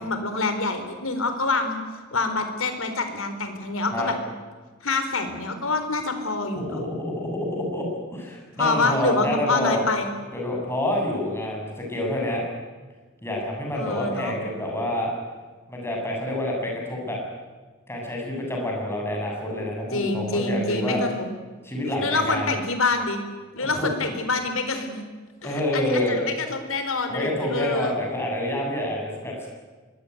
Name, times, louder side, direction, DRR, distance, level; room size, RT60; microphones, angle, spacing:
voice 1, 0.0-1.8 2.1-4.1 4.8-6.8 8.6-10.1 13.7-14.4 19.9-21.3 22.0-23.2 23.5-25.1 25.4-27.9, left 3 dB, 80° left, 7 dB, 4.3 m, -26 dB
voice 2, 6.5-9.8 10.3-12.4 13.2-15.1 15.7-17.2 17.9-21.0 21.6-22.5 23.6-23.9 25.4-26.2 27.1-29.5, left 1 dB, 10° left, -1 dB, 7.4 m, -28 dB
25.0 x 21.5 x 9.5 m, 1.4 s
head